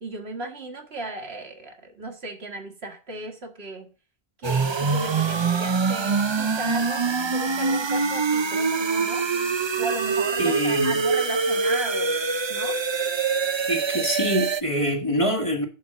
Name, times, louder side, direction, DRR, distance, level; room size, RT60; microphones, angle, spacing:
voice 1, 0.0-3.9 4.4-9.2 9.8-12.1 12.5-12.8, right 2 dB, 75° right, 2.0 m, -35 dB
sound 1, 4.4-14.6, right 4 dB, 35° right, 0.5 m, -24 dB
voice 2, 10.4-11.0 13.7-15.7, equal, 30° left, 1.6 m, -25 dB
10.0 x 4.5 x 6.5 m
omnidirectional pair, 1.1 m